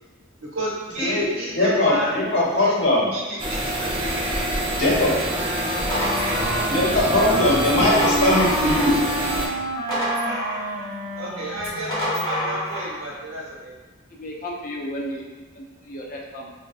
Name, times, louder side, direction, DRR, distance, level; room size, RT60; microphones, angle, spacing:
voice 1, 0.4-2.2 2.5-2.7 3.1-3.9 11.2-13.7, right 1 dB, 85° right, -4 dB, 0.9 m, -31 dB
voice 2, 1.6-3.1 4.7-5.1 6.6-9.0, left 1 dB, 65° left, -5 dB, 0.9 m, -20 dB
sound 1, 3.4-9.5, right 1 dB, 25° right, 0.5 m, -26 dB
Wind instrument woodwind instrument, 4.8-12.8, right 1 dB, 90° left, 0.9 m, -30 dB
sound 2, 5.9-7.0 7.6-9.0 9.4-10.9 11.6-12.9, left 1 dB, 20° left, 1.0 m, -28 dB
voice 3, 14.1-15.2 15.5-16.5, equal, 40° left, -1 dB, 0.4 m, -33 dB
3.9 x 2.3 x 2.4 m, 1.3 s
head